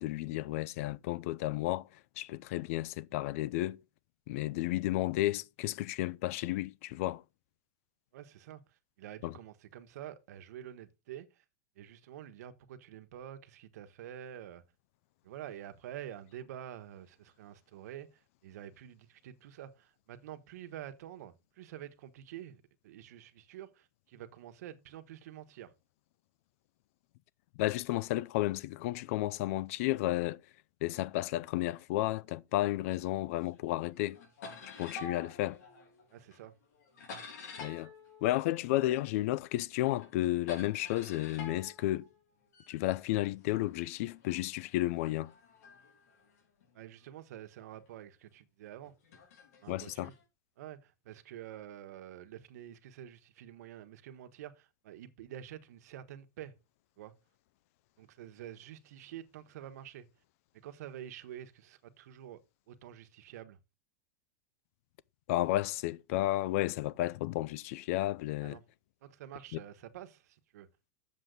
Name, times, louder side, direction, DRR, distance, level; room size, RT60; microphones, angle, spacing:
voice 1, 0.0-3.8 4.3-7.2 9.2-9.3 27.6-30.4 30.8-34.2 34.6-35.6 37.6-37.9 38.2-42.1 42.7-45.3 49.7-50.1 65.3-68.6 69.5-69.6, left 16 dB, 60° left, 0.4 m, -32 dB
voice 2, 8.1-11.4 11.8-14.6 15.2-25.7 36.1-36.5 46.7-49.0 49.6-50.1 50.6-56.5 57.0-57.1 58.0-60.1 60.6-62.4 62.7-63.6 68.4-68.6 69.0-70.7, right 11 dB, 80° right, 1.2 m, -48 dB
sound 1, 32.9-33.6 33.9-39.2 39.5-42.8 43.5-47.0 47.7-47.9 48.8-50.2, left 4 dB, 80° left, 3.9 m, -50 dB
8.0 x 7.3 x 3.8 m
supercardioid pair, 160°, 9 cm